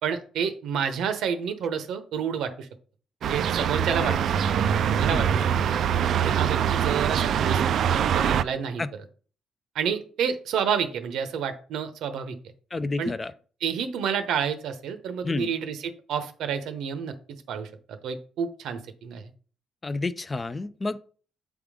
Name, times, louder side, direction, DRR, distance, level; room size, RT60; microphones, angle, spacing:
voice 1, 0.0-2.7 3.2-5.8 6.2-7.7 8.1-8.8 9.7-12.4 13.0-13.1 13.6-15.8 16.1-17.1 17.5-19.3, right 7 dB, 80° right, 0.9 m, -29 dB
sound 1, 3.2-8.4, right 8 dB, 60° right, 0.3 m, -24 dB
voice 2, 12.7-13.3 15.2-15.5 19.8-21.0, left 3 dB, 20° left, 0.3 m, -30 dB
8.0 x 3.6 x 4.9 m
cardioid pair, 155°, 0 cm